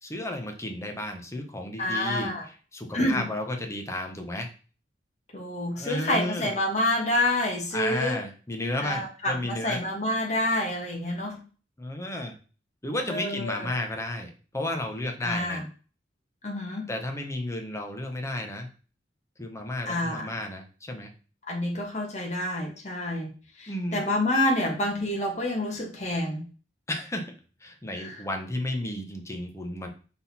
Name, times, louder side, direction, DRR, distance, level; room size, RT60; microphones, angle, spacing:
voice 1, 0.0-4.5 5.7-6.5 7.7-9.8 11.8-12.4 12.8-15.6 16.9-18.7 19.4-21.1 23.7-24.0 26.9-27.3 27.6-29.9, left 1 dB, 15° left, 3 dB, 1.1 m, -33 dB
voice 2, 1.8-2.4 2.9-3.3 5.3-8.2 8.8-11.4 13.1-13.6 15.2-15.6 16.4-16.9 19.8-20.3 21.5-23.3 23.6-26.4 28.0-28.2, left 1 dB, 40° left, 0 dB, 1.5 m, -28 dB
6.2 x 3.9 x 4.2 m, 0.37 s
head